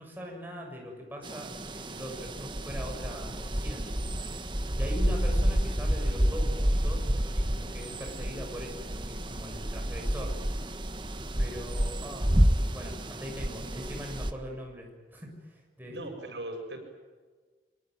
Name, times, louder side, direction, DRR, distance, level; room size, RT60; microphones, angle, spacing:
voice 1, 0.0-10.9 11.4-16.2, equal, 10° right, 0 dB, 6.8 m, -42 dB
sound 1, 1.2-14.3, equal, 25° right, 1.5 m, -29 dB
voice 2, 15.8-16.8, right 1 dB, 90° right, 3 dB, 7.1 m, -39 dB
25.0 x 24.0 x 9.3 m, 1.4 s
head